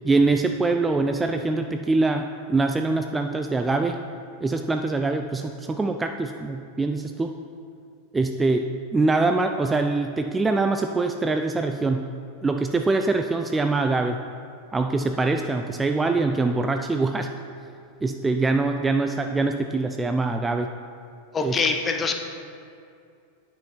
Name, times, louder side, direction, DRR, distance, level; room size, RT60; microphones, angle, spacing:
voice 1, 0.0-4.0 4.4-7.3 8.1-12.1 12.4-14.2 14.7-17.3 18.0-20.7 21.4-21.6, right 3 dB, 10° right, 5 dB, 0.3 m, -24 dB
voice 2, 21.3-22.1, left 4 dB, 20° left, 5 dB, 0.7 m, -24 dB
9.4 x 5.6 x 4.4 m, 2.5 s
figure-of-eight pair, 90°, 0 cm